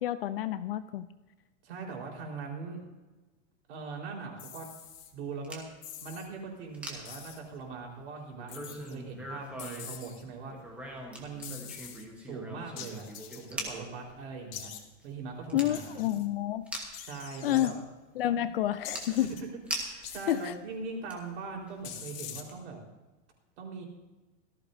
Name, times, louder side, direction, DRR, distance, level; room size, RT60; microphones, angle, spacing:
voice 1, 0.0-1.1 15.5-16.7 17.4-17.7 18.2-19.3 20.3-20.5, left 13 dB, 50° left, 13 dB, 0.5 m, -29 dB
voice 2, 1.6-2.8 3.7-4.7 5.1-5.6 6.0-10.5 11.2-11.6 12.2-13.1 13.3-14.7 15.0-16.1 17.1-17.8 18.3-18.5 19.1-22.8 23.6-23.8, right 4 dB, 60° right, 0 dB, 4.4 m, -41 dB
sound 1, 4.4-5.1 5.8-6.3 7.1-7.5 8.5-9.0 9.6-10.2 11.4-12.0 12.8-13.5 14.5-14.8 15.7-16.3 16.9-17.7 18.8-19.4 20.0-20.6 21.8-22.4, left 9 dB, 85° left, 2.2 m, -44 dB
sound 2, 4.9-5.7 6.3-6.4 6.7-7.8 8.3-10.1 10.5-14.2 14.6-14.7 15.0-15.8 16.1-16.2 16.6-17.1 17.8-17.9 18.2-20.2 20.7-21.3 21.7-21.9 22.5-22.6, equal, 5° right, 1.1 m, -41 dB
17.5 x 14.0 x 2.7 m, 1.2 s
supercardioid pair, 175°, 39 cm